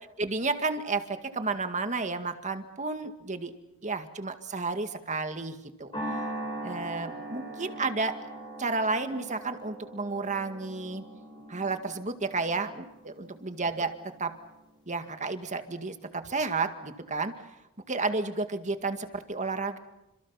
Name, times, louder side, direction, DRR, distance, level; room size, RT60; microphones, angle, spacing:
voice 1, 0.2-3.5 3.8-5.5 5.8-5.9 6.6-8.1 8.6-11.0 11.5-13.9 14.2-14.3 14.9-17.3 17.9-19.8, right 3 dB, 35° right, 8 dB, 2.0 m, -31 dB
sound 1, 5.9-14.4, right 1 dB, 20° left, 5.6 m, -41 dB
30.0 x 26.5 x 5.8 m, 0.94 s
head